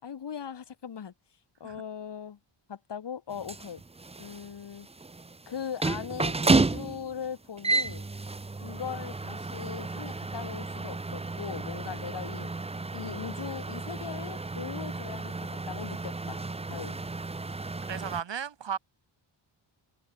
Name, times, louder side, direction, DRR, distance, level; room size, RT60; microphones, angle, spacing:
voice 1, 0.0-1.1 1.6-2.4 2.7-3.8 4.2-4.9 5.5-8.0 8.6-12.5 12.9-16.4 16.7-17.1, left 8 dB, 55° left, 3.1 m, -39 dB
sound 1, 3.3-18.2, right 3 dB, 15° right, 0.7 m, -32 dB
voice 2, 17.9-18.8, right 8 dB, 60° right, 3.7 m, -34 dB
cardioid pair, 95°, 49 cm